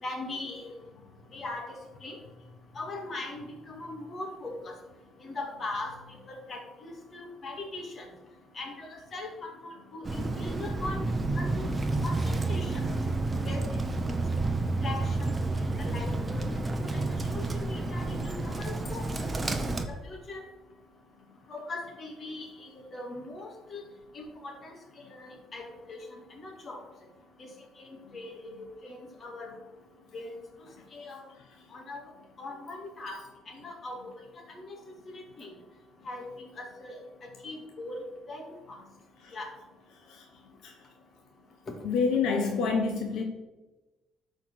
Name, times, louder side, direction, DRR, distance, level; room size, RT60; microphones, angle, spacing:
voice 1, 0.0-0.7 1.3-2.2 2.8-4.7 5.2-5.9 6.3-8.1 8.6-11.1 11.4-11.7 12.0-12.8 13.5-13.7 14.8-15.3 15.8-16.4 16.7-17.0 17.3-19.0 19.9-20.4 21.5-22.5 22.9-23.8 24.1-24.7 25.2-26.0 26.4-26.8 27.4-27.5 27.8-29.5 30.1-30.3 30.9-31.2 31.7-32.0 32.4-33.2 33.6-34.0 34.6-34.8 35.1-35.5 36.1-36.3 36.6-36.9 37.4-38.8 39.3-39.5, left 2 dB, 40° left, 2 dB, 2.3 m, -40 dB
Bird, 10.0-19.9, right 2 dB, 20° right, 1.0 m, -30 dB
voice 2, 41.8-43.2, left 5 dB, 80° left, 3 dB, 1.2 m, -26 dB
12.0 x 4.7 x 6.2 m, 1.1 s
cardioid pair, 125°, 0 cm